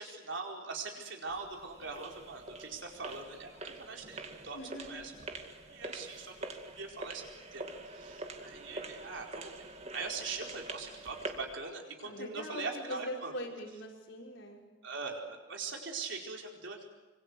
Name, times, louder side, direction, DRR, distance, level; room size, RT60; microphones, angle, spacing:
voice 1, 0.0-4.6 4.9-5.1 5.7-7.3 7.5-9.7 9.9-13.3 14.8-16.9, right 4 dB, 65° right, 1 dB, 4.6 m, -42 dB
sound 1, 1.3-11.5, right 2 dB, 35° right, 2.1 m, -45 dB
voice 2, 4.5-5.0 12.0-14.6, equal, 75° left, -1 dB, 5.6 m, -42 dB
25.5 x 25.5 x 8.1 m, 1.1 s
head